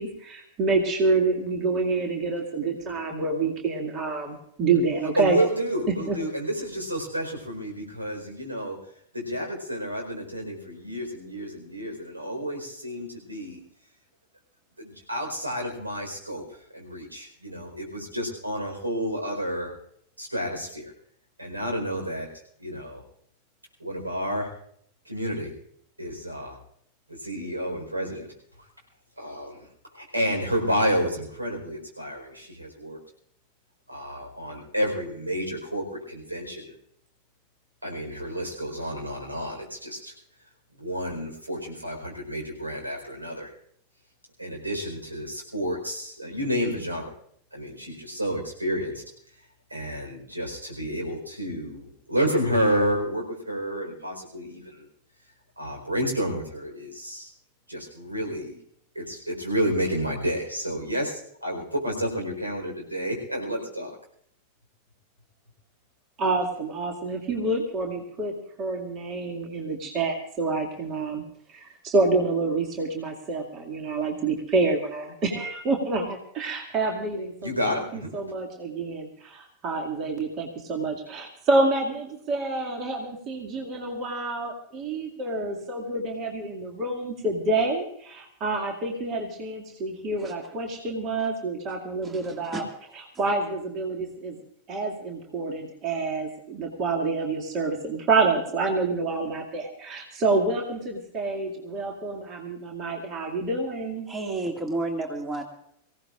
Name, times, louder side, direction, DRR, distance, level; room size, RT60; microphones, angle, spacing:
voice 1, 0.0-5.4 6.1-6.2 66.2-71.2 71.5-92.6 93.2-94.4 94.7-104.1, right 3 dB, 35° right, 1 dB, 2.3 m, -27 dB
voice 2, 5.2-8.8 9.1-13.6 14.8-16.4 16.7-19.7 20.2-20.9 21.4-22.3 22.6-23.0 23.8-24.5 25.1-25.5 26.0-26.6 27.1-28.3 29.2-29.6 29.9-33.0 33.9-36.7 37.8-40.1 40.8-43.5 44.4-47.1 47.5-49.0 49.7-54.8 55.6-57.3 57.7-58.6 58.9-63.9 77.4-78.1, equal, 80° right, 2 dB, 4.4 m, -30 dB
voice 3, 92.0-92.7 104.1-105.4, right 2 dB, 20° right, 3 dB, 2.2 m, -31 dB
24.5 x 16.5 x 2.5 m, 0.67 s
figure-of-eight pair, 90°, 0 cm